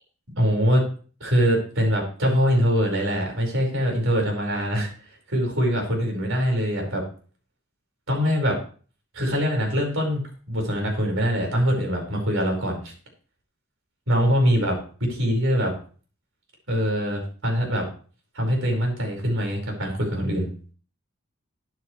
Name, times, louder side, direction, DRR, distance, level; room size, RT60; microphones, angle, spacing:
voice 1, 0.4-0.8 1.2-4.9 5.3-7.0 8.1-8.6 9.1-12.9 14.1-15.7 16.7-17.8 18.3-20.5, equal, 65° right, 1 dB, 5.0 m, -23 dB
13.0 x 9.3 x 3.2 m, 0.40 s
head